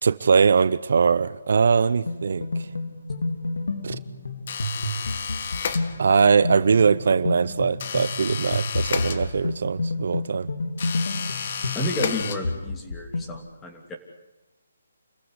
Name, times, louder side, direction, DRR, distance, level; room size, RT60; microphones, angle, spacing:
voice 1, 0.0-2.5 3.8-4.0 6.0-10.5, right 5 dB, 60° right, 16 dB, 0.8 m, -21 dB
sound 1, 2.1-13.3, left 2 dB, 80° left, 3.4 m, -30 dB
sound 2, 4.5-6.3 7.8-9.7 10.8-12.8, left 6 dB, 45° left, 1.8 m, -32 dB
voice 2, 11.7-14.0, left 2 dB, 10° left, 3 dB, 2.9 m, -31 dB
28.5 x 15.5 x 9.9 m, 1.0 s
hypercardioid pair, 155°, 0 cm